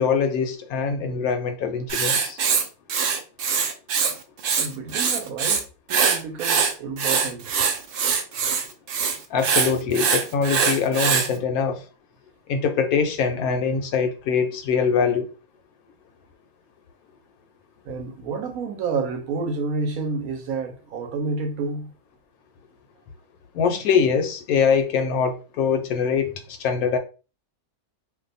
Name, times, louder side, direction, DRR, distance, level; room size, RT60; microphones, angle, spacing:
voice 1, 0.0-2.4 9.3-11.9 12.5-15.3 23.5-27.0, left 6 dB, 75° left, 1.1 m, -23 dB
Writing, 1.9-4.1 4.4-5.6 5.9-11.3, right 6 dB, 90° right, 0.5 m, -22 dB
voice 2, 4.5-7.6 17.8-21.9, right 4 dB, 70° right, 1.0 m, -30 dB
2.6 x 2.2 x 3.9 m
omnidirectional pair, 1.6 m